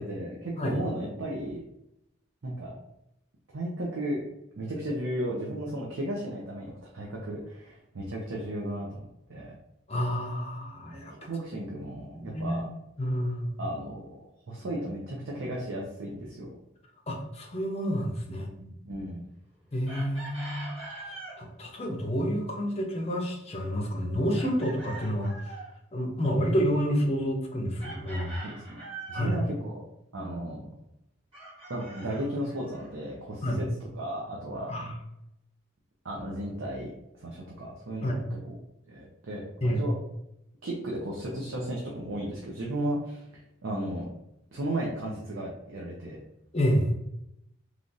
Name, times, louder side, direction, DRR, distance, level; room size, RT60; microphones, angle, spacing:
voice 1, 0.0-1.6 2.4-2.7 3.5-4.2 4.6-9.0 9.3-9.5 11.2-12.7 13.6-16.5 18.3-19.3 28.4-28.8 29.1-29.8 30.1-30.7 31.7-33.7 33.9-34.7 36.0-36.9 37.2-38.5 38.9-40.0 40.6-43.3 43.6-44.0 44.5-46.2, right 1 dB, 70° right, -3 dB, 0.6 m, -35 dB
voice 2, 9.9-11.1 12.1-12.6 13.0-13.6 17.1-18.5 19.7-20.7 21.0-25.6 25.9-28.3 29.1-29.4 33.4-33.6 34.7-34.9 38.0-38.2 39.6-39.9 46.5-46.9, equal, 30° left, 1 dB, 0.5 m, -29 dB
Chicken rooster, 19.9-21.4 24.3-25.7 27.8-29.4 31.3-32.9, right 3 dB, 30° right, 1.3 m, -43 dB
3.3 x 2.4 x 2.6 m, 0.82 s
head